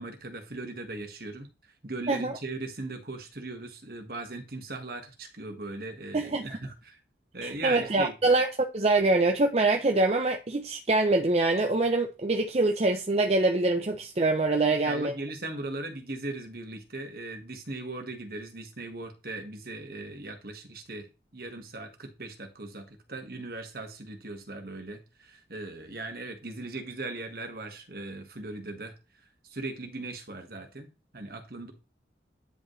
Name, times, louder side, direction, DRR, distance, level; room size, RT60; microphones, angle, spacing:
voice 1, 0.0-1.5 1.8-7.0 7.3-8.1 14.6-21.1 21.3-28.9 29.4-30.9 31.1-31.7, right 2 dB, 55° right, 1.6 m, -39 dB
voice 2, 6.1-6.5 7.4-15.1, right 2 dB, 35° right, 0.6 m, -24 dB
9.6 x 5.2 x 3.2 m
head